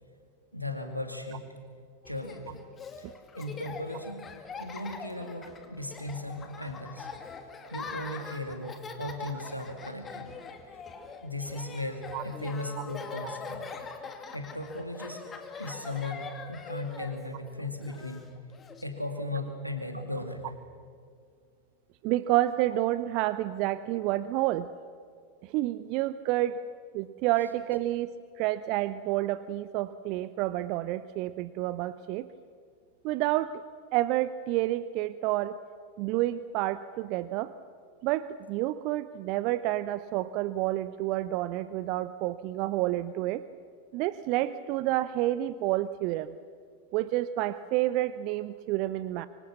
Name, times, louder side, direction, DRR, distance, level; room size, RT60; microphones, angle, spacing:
voice 1, 0.5-1.4 2.0-2.6 3.0-4.2 4.6-7.1 7.7-10.3 11.2-13.7 14.3-15.2 15.6-18.3 18.8-20.4, left 2 dB, 90° left, 5 dB, 2.4 m, -37 dB
Laughter, 2.0-18.8, left 5 dB, 20° left, 2.4 m, -43 dB
voice 2, 22.0-24.7 25.4-26.6 26.9-32.3 33.0-33.6 33.9-35.6 36.0-37.5 38.0-43.4 43.9-46.3 46.9-49.3, right 15 dB, 40° right, 15 dB, 0.6 m, -29 dB
25.0 x 25.0 x 7.2 m, 2.2 s
figure-of-eight pair, 90°, 0 cm